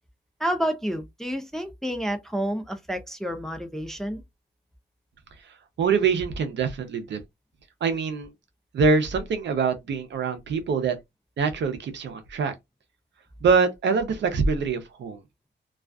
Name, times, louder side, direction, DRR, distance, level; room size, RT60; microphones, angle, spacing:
voice 1, 0.4-4.2, equal, ahead, 0.4 m, -29 dB
voice 2, 5.8-7.2 7.8-8.3 8.7-11.0 11.4-12.5 13.4-15.2, right 5 dB, 70° right, 0.6 m, -24 dB
2.3 x 2.3 x 2.2 m
wide cardioid pair, 125°, 19 cm